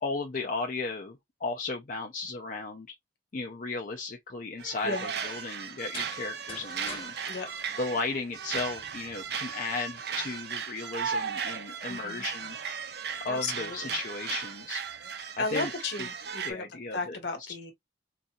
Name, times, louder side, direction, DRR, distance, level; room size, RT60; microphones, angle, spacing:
voice 1, 0.0-3.0 3.3-5.0 5.2-7.1 7.8-12.6 13.2-14.8 15.4-15.7 16.4-17.2, left 3 dB, 45° left, 0.5 m, -35 dB
sound 1, 4.6-16.5, right 6 dB, 60° right, 0.6 m, -36 dB
sound 2, 5.8-8.6, left 4 dB, 30° left, 0.9 m, -46 dB
voice 2, 11.9-12.2 13.3-14.0 15.4-17.7, left 3 dB, 70° left, 1.3 m, -34 dB
4.0 x 2.6 x 2.3 m
head